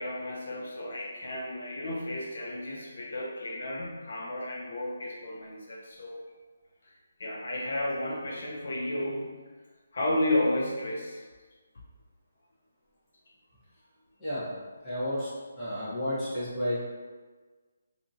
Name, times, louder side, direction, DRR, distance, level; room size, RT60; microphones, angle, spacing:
voice 1, 0.0-6.2 6.8-9.3 9.9-11.2, left 1 dB, 60° left, -3 dB, 0.5 m, -32 dB
voice 2, 14.2-14.5 14.8-15.3 15.6-16.8, equal, 10° left, -13 dB, 0.9 m, -31 dB
2.8 x 2.5 x 2.6 m, 1.4 s
hypercardioid pair, 170°, 0 cm